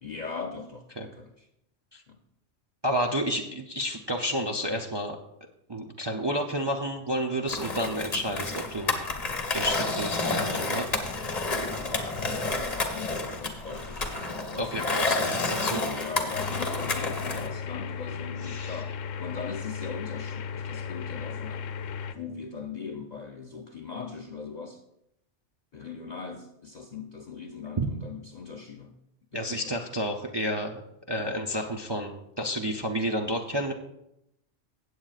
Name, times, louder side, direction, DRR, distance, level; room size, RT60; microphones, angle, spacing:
voice 1, 0.0-1.5 2.1-2.2 12.5-14.1 14.5-15.1 15.8-21.6 22.1-24.8 25.7-28.9 29.3-29.8, left 5 dB, 50° left, 4 dB, 0.5 m, -40 dB
voice 2, 2.8-5.2 5.7-8.9 9.5-10.9 14.6-15.8 18.4-18.8 27.8-27.9 29.3-30.8 31.1-33.7, equal, 35° right, 2 dB, 0.4 m, -30 dB
Skateboard, 7.5-17.5, left 3 dB, 35° left, 1.1 m, -30 dB
sound 1, 16.3-22.1, left 6 dB, 85° left, 1.0 m, -35 dB
16.5 x 7.9 x 2.4 m, 0.81 s
omnidirectional pair, 1.3 m